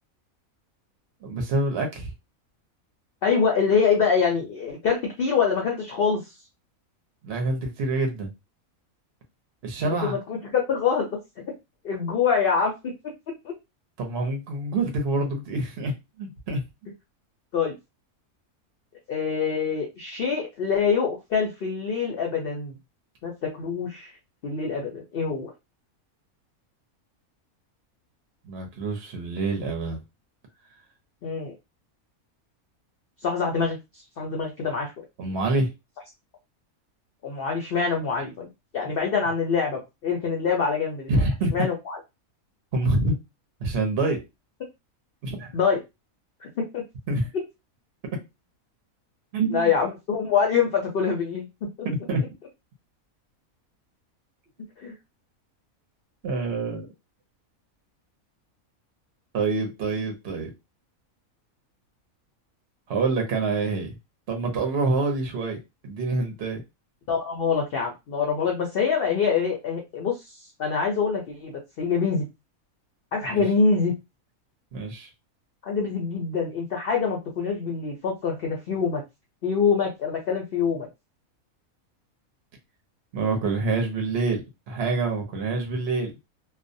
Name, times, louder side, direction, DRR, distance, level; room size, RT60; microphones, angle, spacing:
voice 1, 1.2-2.1 7.2-8.3 9.6-10.2 14.0-15.9 16.2-16.6 28.4-30.0 35.2-35.7 38.9-39.0 41.1-41.6 42.7-43.1 43.6-44.2 45.2-45.5 47.1-47.3 49.3-49.7 51.8-52.2 56.2-56.9 59.3-60.5 62.9-64.0 64.3-65.6 65.8-66.6 73.3-73.4 74.7-75.1 83.1-86.1, right 3 dB, 55° right, 3 dB, 0.8 m, -26 dB
voice 2, 3.2-6.2 9.8-11.1 11.8-12.9 13.4-13.5 17.5-17.7 19.1-22.8 23.2-24.1 24.4-25.5 31.2-31.5 33.2-33.8 34.2-34.9 37.2-38.5 38.7-41.1 41.5-42.0 45.5-45.8 46.4-46.8 49.5-51.5 54.8-54.9 67.1-72.2 73.1-73.9 75.6-79.0 79.4-80.9, left 5 dB, 60° left, 1 dB, 0.6 m, -25 dB
2.4 x 2.0 x 2.6 m, 0.23 s
omnidirectional pair, 1.5 m